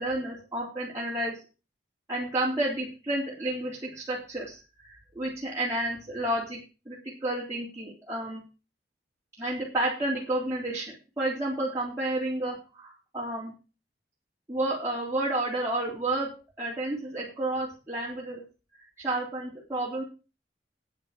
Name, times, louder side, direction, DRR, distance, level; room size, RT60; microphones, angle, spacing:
voice 1, 0.0-1.3 2.1-6.6 6.9-8.4 9.4-13.5 14.5-16.3 16.6-18.4 19.0-20.0, right 1 dB, 15° right, -8 dB, 3.5 m, -31 dB
9.6 x 8.9 x 5.8 m, 0.33 s
head